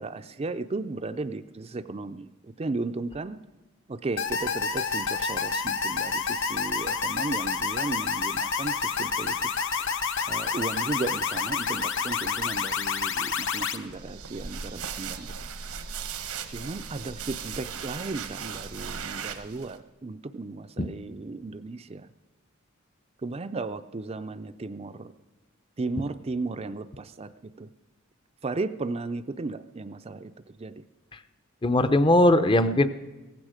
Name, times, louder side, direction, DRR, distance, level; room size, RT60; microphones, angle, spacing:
voice 1, 0.0-2.3 2.6-3.4 3.9-9.9 10.3-15.3 16.5-22.1 23.2-25.1 25.8-27.3 27.6-27.7 28.4-30.8, right 3 dB, 30° right, 10 dB, 0.4 m, -35 dB
sound 1, 4.2-13.8, left 5 dB, 60° left, 1.0 m, -29 dB
sound 2, 13.8-19.8, right 6 dB, 80° right, 1.1 m, -37 dB
voice 2, 31.6-32.9, left 1 dB, 20° left, 11 dB, 0.6 m, -19 dB
16.5 x 15.5 x 5.0 m, 1.2 s
head